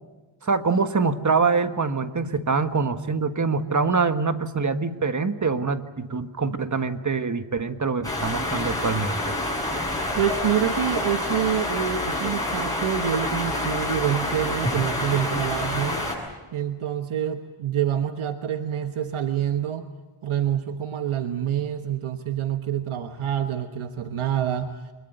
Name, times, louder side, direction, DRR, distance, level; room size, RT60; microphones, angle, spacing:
voice 1, 0.4-9.3, right 4 dB, 35° right, 9 dB, 1.5 m, -24 dB
sound 1, 8.0-16.1, left 1 dB, 5° left, 7.9 m, -27 dB
voice 2, 10.1-16.0 16.5-19.8 20.2-24.8, right 9 dB, 75° right, 7 dB, 1.3 m, -27 dB
25.0 x 21.5 x 7.9 m, 1.3 s
cardioid pair, 75°, 50 cm